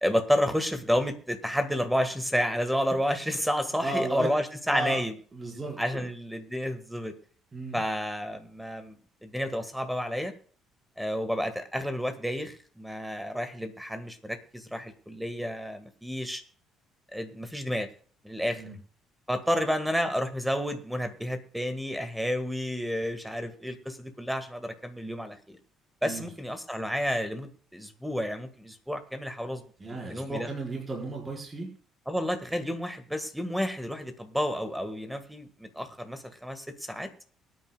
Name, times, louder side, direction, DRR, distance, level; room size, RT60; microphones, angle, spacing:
voice 1, 0.0-5.1 5.8-7.1 7.7-8.9 9.2-10.3 11.0-16.4 17.1-17.9 18.2-18.6 19.3-25.6 26.0-29.6 30.1-30.5 32.1-37.1, equal, 5° right, 9 dB, 1.7 m, -30 dB
voice 2, 3.8-4.3 4.7-5.0 5.3-6.1 7.5-7.8 18.5-18.8 26.0-26.3 29.8-31.7, right 2 dB, 20° right, -1 dB, 4.9 m, -34 dB
23.0 x 9.5 x 2.4 m, 0.42 s
cardioid pair, 110°, 0 cm